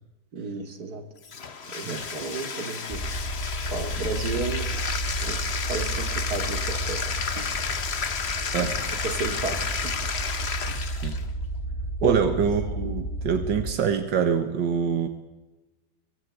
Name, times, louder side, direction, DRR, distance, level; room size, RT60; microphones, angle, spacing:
voice 1, 0.3-1.0 1.7-3.0 3.7-4.7 5.2-5.4 5.7-7.0 7.4-7.5 8.6-8.7 9.2-9.9 12.0-12.2, right 4 dB, 60° right, 5 dB, 3.0 m, -32 dB
Bathtub (filling or washing), 1.2-11.3, left 5 dB, 40° left, 1.4 m, -31 dB
sound 1, 2.9-13.7, right 1 dB, 15° left, 2.0 m, -32 dB
voice 2, 10.9-11.2 12.0-15.1, right 7 dB, 85° right, 7 dB, 2.1 m, -25 dB
24.0 x 20.0 x 8.1 m, 1.1 s
omnidirectional pair, 1.9 m